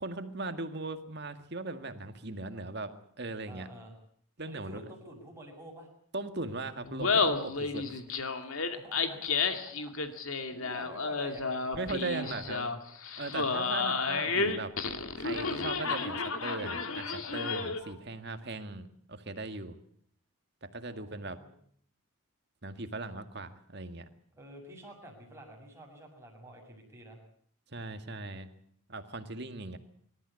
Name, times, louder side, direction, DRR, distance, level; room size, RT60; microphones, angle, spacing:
voice 1, 0.0-2.9 3.2-3.7 4.4-4.8 6.1-8.0 11.8-12.6 13.2-14.7 15.2-19.8 20.6-21.4 22.6-24.1 27.7-28.5 28.9-29.8, right 2 dB, 50° right, 8 dB, 2.0 m, -38 dB
voice 2, 3.5-3.9 4.5-5.9 8.7-12.6 20.8-21.5 24.3-27.2, equal, 10° right, 0 dB, 6.8 m, -50 dB
Laughter, 6.8-17.9, left 4 dB, 75° left, 2.4 m, -32 dB
25.5 x 14.0 x 9.7 m, 0.64 s
head